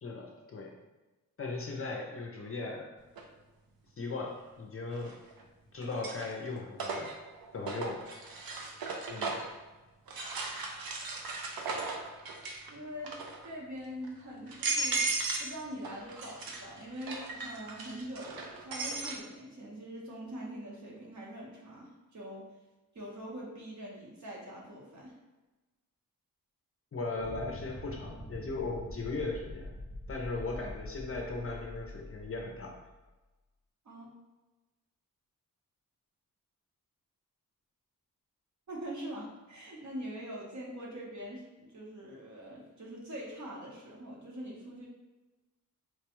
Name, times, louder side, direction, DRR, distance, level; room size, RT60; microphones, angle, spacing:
voice 1, 0.0-0.7 1.4-2.9 4.0-5.2 5.7-7.1 7.5-8.1 9.1-9.4 26.9-29.7 30.1-32.8, left 3 dB, 40° left, 1 dB, 0.5 m, -38 dB
sound 1, 3.2-3.3 5.0-5.4 5.8-9.6 10.1-12.7 13.0-13.5 14.0-14.1 14.5-15.5 15.8-19.2, right 3 dB, 85° right, 0.6 m, -36 dB
voice 2, 12.7-13.1 13.4-15.1 15.4-22.5 22.9-25.2 33.8-34.1 38.7-44.9, equal, 55° right, -3 dB, 0.9 m, -43 dB
sound 2, 27.2-32.9, left 1 dB, 15° right, 0.7 m, -45 dB
4.6 x 2.2 x 3.0 m, 1.1 s
wide cardioid pair, 180°, 35 cm